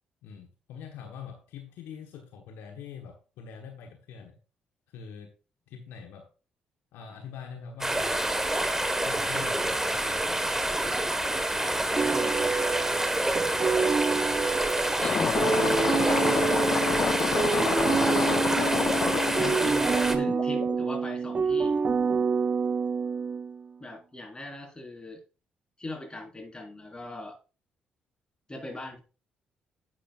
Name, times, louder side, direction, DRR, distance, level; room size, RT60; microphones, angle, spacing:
voice 1, 0.2-4.4 4.9-5.3 5.7-6.3 6.9-8.2 9.0-10.4, left 7 dB, 70° left, 4 dB, 1.3 m, -44 dB
sound 1, 7.8-20.2, right 1 dB, 10° right, 1.5 m, -28 dB
voice 2, 11.5-12.4 15.0-16.6 19.4-21.7 23.8-25.2 25.8-27.4 28.5-29.0, left 1 dB, 20° left, 3 dB, 4.4 m, -40 dB
sound 2, 12.0-23.7, right 5 dB, 35° right, 0.4 m, -27 dB
sound 3, 15.0-20.8, left 7 dB, 50° left, 0.4 m, -29 dB
10.5 x 7.5 x 2.5 m, 0.32 s
hypercardioid pair, 45°, 4 cm